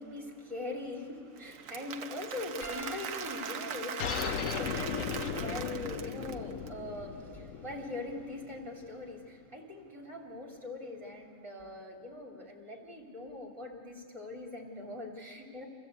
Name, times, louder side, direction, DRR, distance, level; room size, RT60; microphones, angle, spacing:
voice 1, 0.0-15.7, left 2 dB, 20° right, -1 dB, 3.2 m, -42 dB
Applause / Crowd, 1.4-6.7, right 7 dB, 85° right, 1.2 m, -41 dB
Piano, 2.6-7.3 8.2-8.4 10.3-10.4, right 2 dB, 45° left, 4.9 m, -50 dB
sound 1, 4.0-9.1, left 7 dB, 75° left, 1.2 m, -37 dB
27.0 x 15.0 x 8.2 m, 2.1 s
omnidirectional pair, 1.4 m